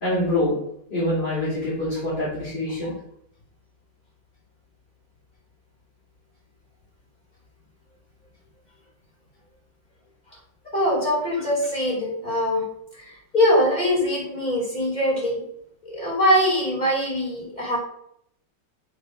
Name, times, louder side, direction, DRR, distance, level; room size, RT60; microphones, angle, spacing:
voice 1, 0.0-0.6 0.9-3.0, left 1 dB, 70° left, -10 dB, 3.3 m, -25 dB
voice 2, 10.7-12.6 13.0-15.4 15.8-17.8, equal, 25° left, -5 dB, 2.7 m, -22 dB
8.1 x 3.5 x 5.1 m, 0.73 s
omnidirectional pair, 2.0 m